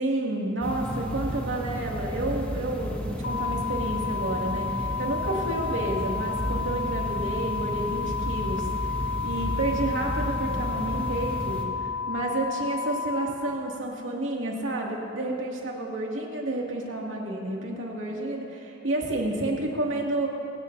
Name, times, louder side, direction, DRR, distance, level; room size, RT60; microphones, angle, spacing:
voice 1, 0.0-8.7 9.2-20.3, right 2 dB, 85° right, -2 dB, 2.3 m, -30 dB
sound 1, 0.6-11.6, equal, 10° left, 1.4 m, -33 dB
sound 2, 3.2-13.2, left 5 dB, 60° left, 2.1 m, -32 dB
23.5 x 16.5 x 2.7 m, 2.7 s
head